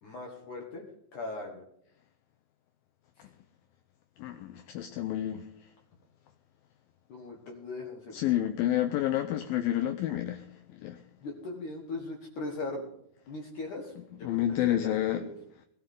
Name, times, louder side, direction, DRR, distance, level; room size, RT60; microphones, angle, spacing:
voice 1, 0.0-0.9 1.1-1.6 7.1-8.3 11.2-12.8 13.3-15.3, left 2 dB, 60° left, 2.7 m, -39 dB
voice 2, 4.2-5.5 8.1-11.0 14.2-15.2, left 12 dB, 80° left, 2.2 m, -29 dB
19.5 x 13.0 x 3.8 m
omnidirectional pair, 4.6 m